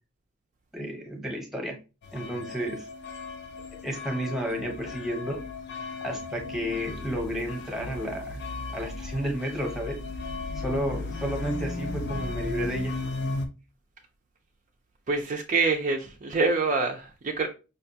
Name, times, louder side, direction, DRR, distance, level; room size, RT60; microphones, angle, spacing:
voice 1, 0.7-1.8 2.1-2.9 3.8-5.4 6.0-8.4 8.7-10.0 10.5-12.9, equal, ahead, 0.8 m, -32 dB
sound 1, 2.0-13.5, left 3 dB, 55° left, 0.5 m, -35 dB
voice 2, 15.1-17.5, right 4 dB, 40° right, 0.4 m, -26 dB
4.9 x 2.2 x 2.7 m
head